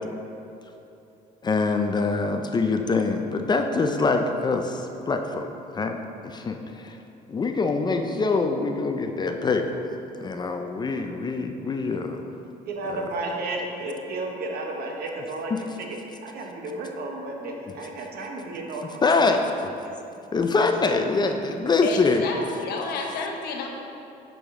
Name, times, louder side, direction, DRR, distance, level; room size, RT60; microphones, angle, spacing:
voice 1, 1.4-5.5 5.7-6.0 6.2-7.0 7.3-9.9 10.2-12.3 12.9-13.0 15.5-15.6 19.0-19.4 20.3-22.3, left 4 dB, 25° left, 5 dB, 0.4 m, -24 dB
voice 2, 12.6-15.9 16.2-19.0, right 2 dB, 65° right, 1 dB, 1.0 m, -32 dB
voice 3, 21.8-23.7, left 4 dB, 70° left, 1 dB, 0.9 m, -30 dB
6.3 x 5.0 x 3.6 m, 2.7 s
cardioid pair, 110°, 17 cm